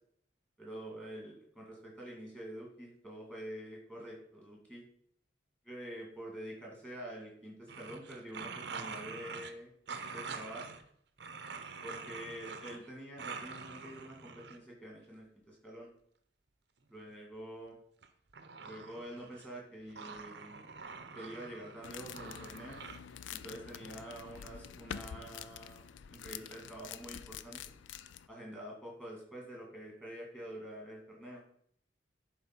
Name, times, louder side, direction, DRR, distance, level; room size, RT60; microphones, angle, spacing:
voice 1, 0.6-4.8 5.6-9.7 10.1-10.8 11.8-15.9 16.9-17.8 18.6-20.7 21.1-22.8 23.3-27.8 28.3-31.4, right 1 dB, 5° left, -2 dB, 2.1 m, -47 dB
sound 1, 7.7-9.5 9.9-10.8 11.2-12.9 13.2-14.6 18.0-19.6 19.9-23.0, right 5 dB, 60° right, 0.7 m, -45 dB
sound 2, 21.8-28.3, left 8 dB, 75° left, 0.4 m, -47 dB
11.0 x 4.4 x 4.4 m, 0.66 s
head